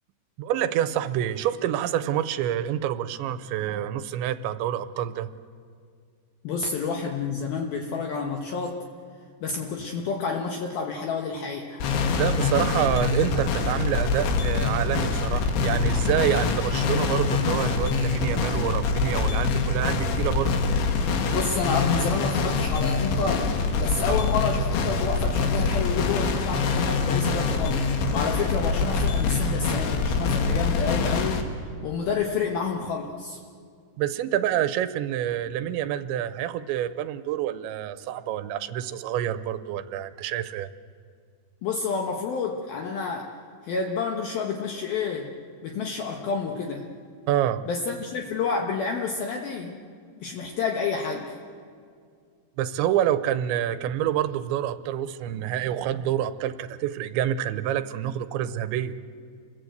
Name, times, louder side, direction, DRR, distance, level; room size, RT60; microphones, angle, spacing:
voice 1, 0.4-5.3 12.2-20.6 34.0-40.7 47.3-47.6 52.6-58.9, right 11 dB, 85° right, 12 dB, 3.1 m, -27 dB
voice 2, 6.4-8.8 9.4-11.8 21.3-23.5 23.8-33.4 41.6-43.3 43.6-45.3 45.6-46.9 47.7-49.8 50.2-51.4, left 5 dB, 65° left, 1 dB, 2.9 m, -29 dB
sound 1, 11.8-31.4, left 4 dB, 80° left, 4.1 m, -25 dB
28.5 x 21.0 x 8.1 m, 2.2 s
omnidirectional pair, 5.2 m